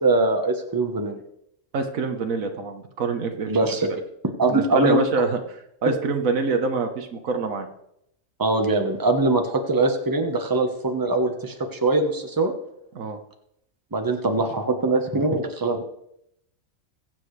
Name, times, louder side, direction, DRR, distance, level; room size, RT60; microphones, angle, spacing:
voice 1, 0.0-1.2 3.5-3.9 4.4-5.0 8.4-12.5 13.9-15.9, right 2 dB, 15° right, 4 dB, 1.2 m, -22 dB
voice 2, 1.7-4.0 4.5-5.4 5.8-7.7 12.9-13.2, right 4 dB, 85° right, 6 dB, 1.6 m, -26 dB
22.0 x 7.7 x 3.3 m, 0.78 s
omnidirectional pair, 1.4 m